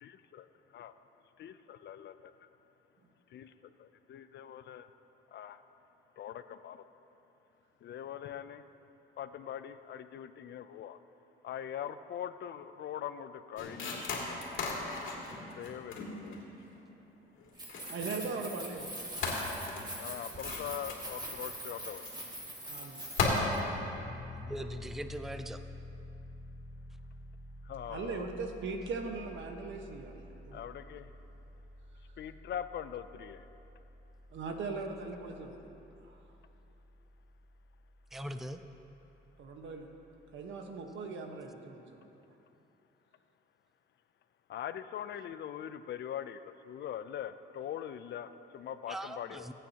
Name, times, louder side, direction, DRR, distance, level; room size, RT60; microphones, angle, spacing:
voice 1, 0.0-0.5 0.7-0.9 1.4-2.3 3.3-3.5 3.8-4.9 5.3-5.6 6.2-6.8 7.8-8.6 9.2-11.0 11.4-14.3 15.6-16.5 20.0-22.1 27.7-28.3 30.5-31.1 32.2-33.4 44.5-46.4 46.7-49.5, left 10 dB, 60° left, 11 dB, 0.5 m, -42 dB
sound 1, 13.6-16.8 17.4-18.3 18.7-18.9 19.2-21.5 22.0-22.1 22.5-22.7 23.1-23.3, left 5 dB, 80° left, 2.3 m, -37 dB
Keys jangling, 17.5-23.6, right 1 dB, 20° right, 2.3 m, -43 dB
voice 2, 17.9-19.0 22.7-23.1 27.9-30.2 30.5-30.6 34.3-35.7 36.0-36.2 39.4-39.9 40.3-42.1, right 4 dB, 70° right, 3 dB, 1.3 m, -39 dB
Piano, 23.9-40.6, left 2 dB, 40° left, 1.0 m, -51 dB
voice 3, 24.4-25.6 38.1-38.6 48.9-49.5, right 1 dB, ahead, 8 dB, 0.5 m, -41 dB
21.0 x 8.7 x 2.9 m, 2.9 s
cardioid pair, 90°, 20 cm